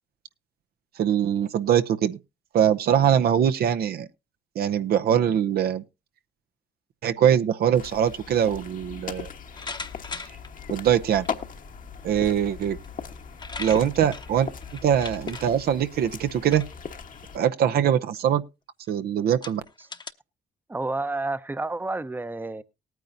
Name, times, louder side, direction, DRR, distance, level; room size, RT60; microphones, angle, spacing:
voice 1, 1.0-2.2 2.5-4.1 4.6-5.8 7.0-9.3 10.7-11.3 12.0-12.8 13.6-14.5 14.8-16.6 17.3-18.4 18.9-19.6, right 9 dB, 65° right, 0.7 m, -22 dB
sound 1, 7.7-17.4, left 6 dB, 55° left, 1.2 m, -39 dB
sound 2, 9.6-10.5 11.2-11.3 12.8-12.9 13.2-15.4 16.4-16.8 17.1-17.4 18.1-18.2 18.9-19.0 19.4-20.1, left 3 dB, 25° left, 0.9 m, -38 dB
voice 2, 20.7-22.6, right 2 dB, 10° right, 0.7 m, -30 dB
19.0 x 9.2 x 2.6 m
supercardioid pair, 55°, 17 cm